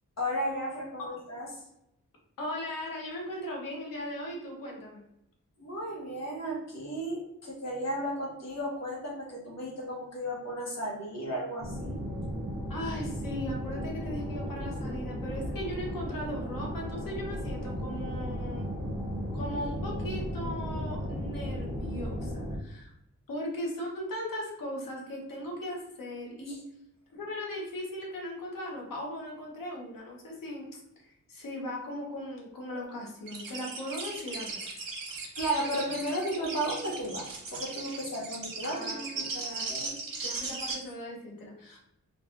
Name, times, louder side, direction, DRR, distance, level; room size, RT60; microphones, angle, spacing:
voice 1, 0.2-1.5 5.6-12.0 26.5-26.6 35.4-40.0, equal, 55° left, -2 dB, 0.9 m, -34 dB
voice 2, 2.4-5.0 12.7-18.7 19.3-22.9 23.3-26.6 27.1-34.6 38.6-39.7 40.2-41.8, left 1 dB, 90° left, -1 dB, 0.9 m, -38 dB
sound 1, 11.6-22.6, equal, 5° right, 0.7 m, -35 dB
sound 2, 33.3-40.7, right 3 dB, 90° right, 0.9 m, -37 dB
3.3 x 2.3 x 2.5 m, 0.80 s
wide cardioid pair, 155°, 32 cm